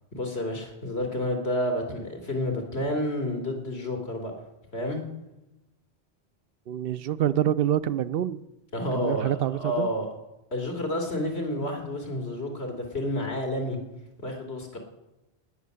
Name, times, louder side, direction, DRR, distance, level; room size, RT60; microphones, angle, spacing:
voice 1, 0.1-4.3 4.7-5.0 8.7-10.1 10.5-13.8 14.2-14.8, left 1 dB, 85° left, 3 dB, 3.1 m, -30 dB
voice 2, 6.7-8.4 8.9-9.9, right 11 dB, 65° right, 16 dB, 0.8 m, -26 dB
18.0 x 6.6 x 9.6 m, 0.98 s
omnidirectional pair, 1.1 m